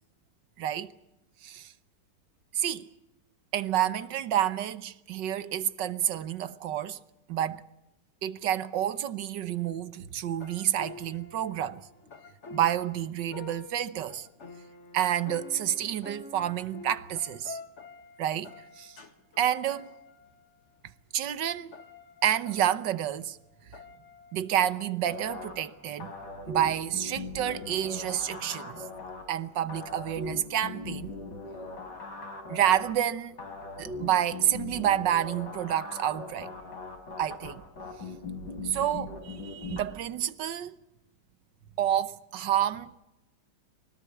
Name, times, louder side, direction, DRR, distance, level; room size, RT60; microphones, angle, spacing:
voice 1, 0.6-0.9 1.4-1.7 2.5-2.9 3.5-7.0 7.3-7.6 8.2-11.9 12.5-14.3 14.9-17.6 18.2-19.0 19.4-19.9 21.1-21.8 22.2-23.4 24.3-26.1 26.5-28.9 29.3-31.1 32.5-33.4 33.8-36.5 37.2-37.6 38.6-40.8 41.8-43.0, right 11 dB, 85° right, 1.7 m, -29 dB
sound 1, 10.3-20.8 21.2-26.7 27.3-28.6, left 3 dB, 40° left, 1.9 m, -49 dB
sound 2, 25.1-39.8, left 3 dB, 80° left, 4.3 m, -40 dB
24.0 x 18.0 x 8.3 m
omnidirectional pair, 1.9 m